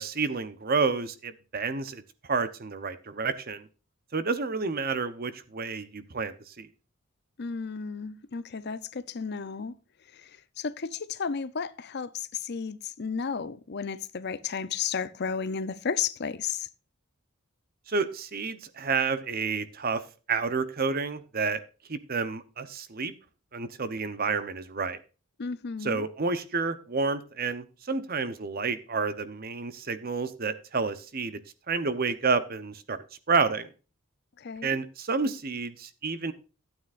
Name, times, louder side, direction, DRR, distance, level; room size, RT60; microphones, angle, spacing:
voice 1, 0.0-2.0 2.3-3.7 4.1-6.7 17.9-20.0 20.3-21.6 21.9-23.1 23.5-25.0 25.8-31.4 31.7-33.0 33.3-33.7 34.6-36.3, right 4 dB, 45° right, 0.8 m, -30 dB
voice 2, 7.4-9.7 10.2-10.3 10.6-16.7 25.4-26.0 34.4-34.8, left 6 dB, 50° left, 0.6 m, -33 dB
13.0 x 8.9 x 2.5 m
head